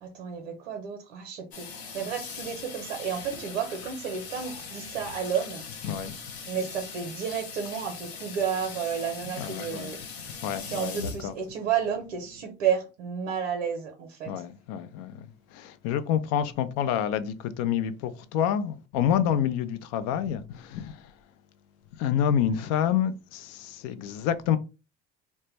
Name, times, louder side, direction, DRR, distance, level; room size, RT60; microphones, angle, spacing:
voice 1, 0.0-5.6 6.4-10.0 10.7-14.3, right 7 dB, 80° right, 0.6 m, -31 dB
Water tap faucet / Sink (filling or washing), 1.5-12.4, left 5 dB, 85° left, 0.7 m, -41 dB
voice 2, 5.8-6.3 9.2-10.0 10.4-11.3 14.3-21.2 21.9-24.6, left 9 dB, 55° left, 0.4 m, -28 dB
2.1 x 2.0 x 3.2 m
hypercardioid pair, 65°, 31 cm